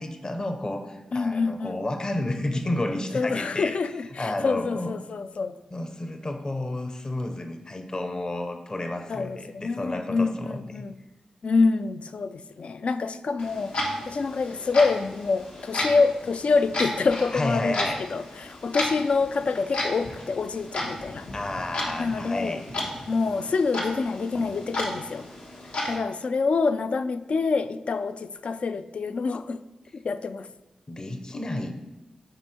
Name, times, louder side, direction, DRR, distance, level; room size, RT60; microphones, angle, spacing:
voice 1, 0.0-3.8 4.2-4.9 5.7-10.9 17.3-18.1 21.3-22.6 30.9-31.7, left 1 dB, 35° left, 6 dB, 0.7 m, -31 dB
voice 2, 1.1-1.8 3.1-5.6 9.1-11.0 11.4-21.3 22.0-22.6 23.1-25.3 25.9-29.6 29.9-30.5, left 4 dB, 65° left, 12 dB, 0.3 m, -26 dB
Clock, 13.4-26.0, left 1 dB, 85° left, 1.2 m, -34 dB
7.9 x 4.3 x 4.4 m, 1.0 s
wide cardioid pair, 75°, 2 cm